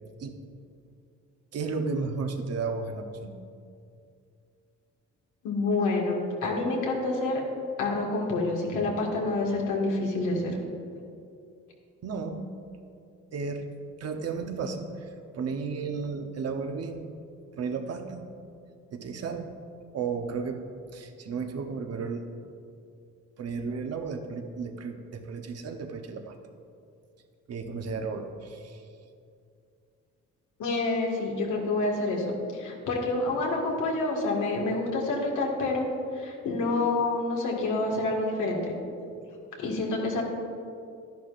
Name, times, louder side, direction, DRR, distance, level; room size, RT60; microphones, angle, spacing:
voice 1, 1.5-3.4 12.0-12.5 13.3-13.7 14.0-15.1 15.3-17.1 17.5-18.3 18.9-19.5 19.9-20.6 20.9-22.3 23.4-26.3 27.5-28.8, right 4 dB, 55° right, 5 dB, 1.0 m, -33 dB
voice 2, 5.4-6.1 6.4-7.4 7.8-10.5 30.6-35.9 36.2-38.6 39.6-40.2, left 2 dB, 80° left, -1 dB, 1.9 m, -28 dB
11.5 x 10.5 x 2.6 m, 2.5 s
cardioid pair, 90°, 30 cm